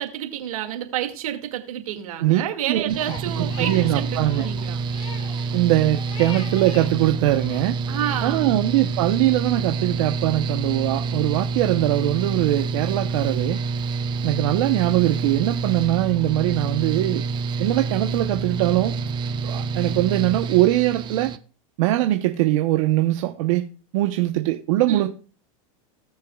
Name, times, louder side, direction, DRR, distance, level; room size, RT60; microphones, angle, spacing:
voice 1, 0.0-4.8 7.9-8.5 24.9-25.1, right 11 dB, 90° right, 2.1 m, -29 dB
Mechanical fan, 2.9-21.4, right 4 dB, 25° right, 0.6 m, -27 dB
Crying sobbing, 3.0-6.9 7.3-8.3, left 5 dB, 35° left, 2.4 m, -40 dB
voice 2, 3.4-4.5 5.5-7.8 8.2-13.6 14.2-17.2 17.6-19.0 19.4-21.3 21.8-23.7 23.9-25.1, right 15 dB, 70° right, 0.9 m, -21 dB
18.5 x 6.7 x 2.3 m
supercardioid pair, 140°, 18 cm